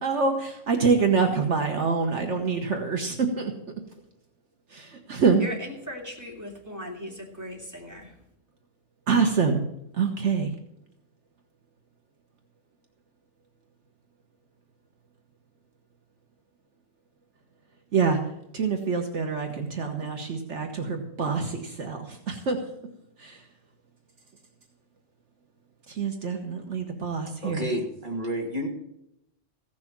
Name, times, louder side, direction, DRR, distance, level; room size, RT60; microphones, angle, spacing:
voice 1, 0.0-3.5 4.7-5.5 9.1-9.6 10.0-10.5 17.9-18.2 18.5-22.6 23.2-23.4 25.9-27.7, right 5 dB, 70° right, 3 dB, 1.6 m, -25 dB
voice 2, 5.4-8.1, left 1 dB, 15° right, -2 dB, 2.8 m, -38 dB
voice 3, 27.4-28.7, equal, 40° right, 0 dB, 2.6 m, -30 dB
16.0 x 6.3 x 7.3 m, 0.80 s
omnidirectional pair, 1.3 m